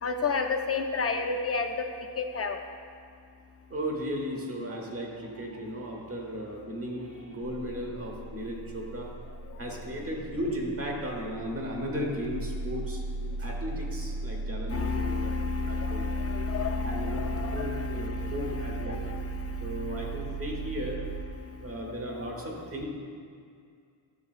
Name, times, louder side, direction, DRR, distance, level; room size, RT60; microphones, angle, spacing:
voice 1, 0.0-1.9 2.2-2.6 9.4-9.6 14.7-20.7 21.3-22.6, left 5 dB, 35° left, 5 dB, 0.4 m, -32 dB
voice 2, 3.7-9.1 9.6-13.0 13.4-15.2 15.7-16.0 16.8-19.0 19.6-21.1 21.6-22.9, equal, 30° right, 0 dB, 1.0 m, -35 dB
sound 1, 7.4-21.2, right 3 dB, 90° right, 0.7 m, -37 dB
11.0 x 7.2 x 2.4 m, 2.2 s
wide cardioid pair, 175°, 47 cm